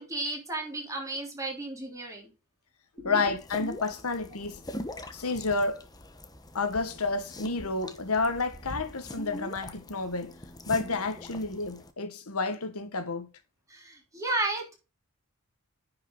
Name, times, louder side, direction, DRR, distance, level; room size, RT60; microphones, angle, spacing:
voice 1, 0.0-2.3 3.0-3.2 13.7-14.7, right 2 dB, 15° right, 3.3 m, -33 dB
voice 2, 3.0-4.6 5.1-5.8 6.5-10.3 10.7-13.3, left 3 dB, 85° left, 1.5 m, -30 dB
sound 1, 3.4-11.9, left 1 dB, 20° left, 1.0 m, -43 dB
9.9 x 5.6 x 3.7 m
head